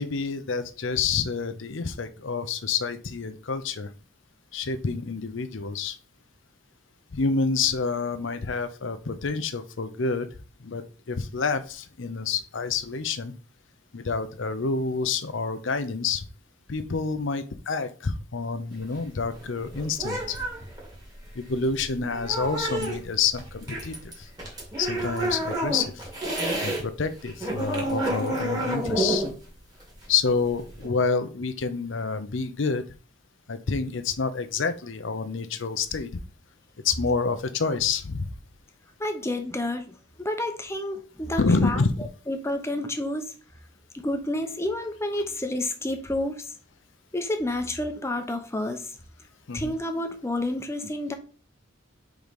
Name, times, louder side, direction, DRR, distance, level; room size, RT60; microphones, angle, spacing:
voice 1, 0.0-3.9 4.5-6.0 7.1-10.3 10.6-13.3 13.9-16.2 16.7-20.4 21.3-24.3 24.8-26.1 26.6-29.3 30.1-32.8 33.5-36.1 36.8-38.3 41.4-42.1 49.5-49.7, left 4 dB, 70° left, 0.7 m, -28 dB
sound 1, 18.7-26.8 27.1-30.9, right 1 dB, 20° right, 2.2 m, -30 dB
voice 2, 39.0-41.8 42.3-43.3 43.9-46.4 47.1-48.8 49.5-51.1, left 1 dB, 15° left, 0.8 m, -29 dB
4.8 x 3.9 x 5.2 m
head